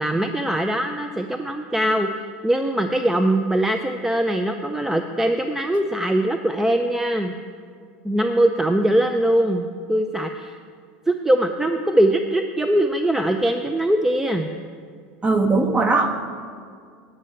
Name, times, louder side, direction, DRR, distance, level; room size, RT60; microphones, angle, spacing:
voice 1, 0.0-2.1 2.4-7.3 8.0-10.6 11.1-14.5, right 1 dB, 5° right, 6 dB, 0.5 m, -21 dB
voice 2, 15.2-16.1, right 3 dB, 25° right, 7 dB, 1.0 m, -19 dB
9.0 x 5.6 x 7.7 m, 2.1 s
hypercardioid pair, 95°, 5 cm